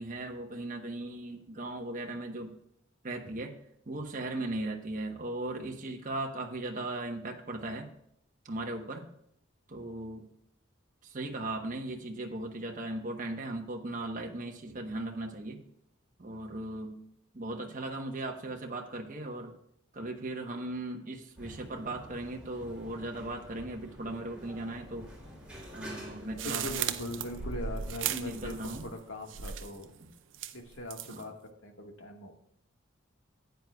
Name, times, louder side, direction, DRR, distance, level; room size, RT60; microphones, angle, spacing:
voice 1, 0.0-2.5 3.0-3.5 3.8-7.9 8.4-9.1 9.7-10.2 11.0-15.6 16.2-17.0 17.3-19.5 19.9-25.1 25.7-26.7 28.1-28.9 30.0-30.1 31.1-31.3, right 2 dB, 40° right, 2 dB, 1.1 m, -37 dB
sound 1, 21.4-28.8, equal, 5° right, 3.2 m, -48 dB
sound 2, 26.4-29.0 29.3-29.8 30.3-31.2, right 8 dB, 70° right, 0.6 m, -36 dB
voice 2, 26.5-28.5 28.8-29.9 30.5-32.3, left 1 dB, 80° left, 3 dB, 1.7 m, -41 dB
14.5 x 9.2 x 2.3 m, 0.74 s
head